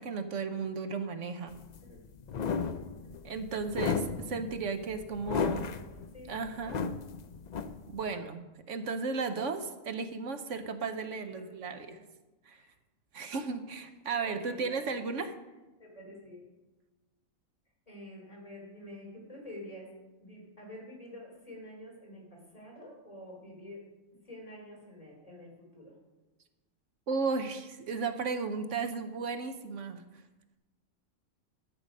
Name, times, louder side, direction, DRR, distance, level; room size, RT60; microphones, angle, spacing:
voice 1, 0.0-1.6 3.2-5.7 6.3-6.8 7.9-8.4 8.7-12.0 12.5-12.6 13.1-15.3 27.1-30.0, right 4 dB, 65° right, 9 dB, 1.1 m, -34 dB
sound 1, 1.5-8.1, left 5 dB, 80° left, 0.3 m, -35 dB
voice 2, 2.7-3.2 5.3-6.3 11.1-12.0 12.5-12.7 14.2-15.1 15.8-16.5 17.9-19.9 20.2-23.8 24.2-26.0, left 1 dB, 25° left, -2 dB, 3.8 m, -48 dB
13.0 x 7.8 x 5.3 m, 1.1 s
omnidirectional pair, 1.4 m